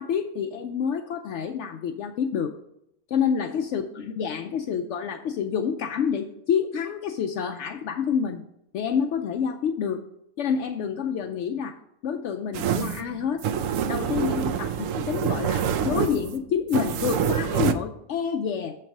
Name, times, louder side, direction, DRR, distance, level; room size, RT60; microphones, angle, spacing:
voice 1, 0.0-2.6 3.1-8.4 8.7-10.0 10.4-11.8 12.0-13.5 13.9-18.7, left 7 dB, 70° left, 6 dB, 0.8 m, -28 dB
sound 1, 12.5-17.7, right 8 dB, 80° right, 0.9 m, -26 dB
7.4 x 4.5 x 5.9 m, 0.77 s
omnidirectional pair, 1.3 m